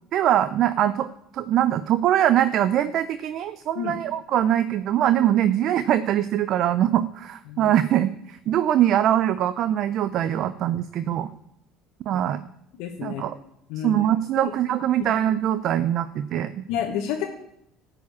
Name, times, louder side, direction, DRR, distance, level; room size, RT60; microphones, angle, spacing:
voice 1, 0.1-1.1 1.3-11.3 12.1-12.4 13.0-13.4 13.8-16.6, right 11 dB, 60° right, 13 dB, 0.5 m, -22 dB
voice 2, 12.8-13.2 13.7-13.9 14.4-14.5 16.7-17.2, left 9 dB, 75° left, 0 dB, 1.3 m, -29 dB
13.0 x 5.0 x 8.4 m, 0.77 s
hypercardioid pair, 75°, 0 cm